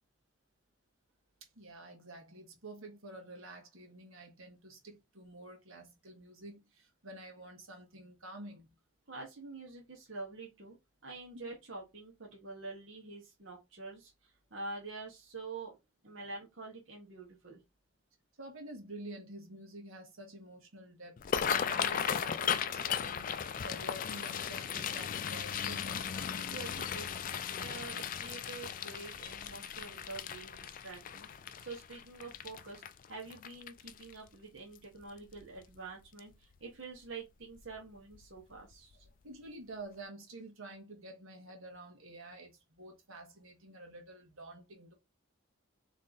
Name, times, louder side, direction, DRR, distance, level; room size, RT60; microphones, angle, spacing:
voice 1, 1.5-8.7 11.4-11.5 18.4-23.3 23.6-26.1 39.2-44.9, right 1 dB, 85° right, 1.5 m, -49 dB
voice 2, 9.1-10.8 11.0-15.7 16.0-17.6 26.3-27.3 27.6-31.3 31.6-32.8 33.1-39.0, right 3 dB, 65° right, 1.2 m, -46 dB
sound 1, 21.2-34.3 34.8-35.0 35.4-35.8 36.2-36.3 37.6-37.8 38.1-38.2 38.7-38.8, left 8 dB, 40° left, 0.3 m, -36 dB
3.6 x 3.2 x 3.9 m
head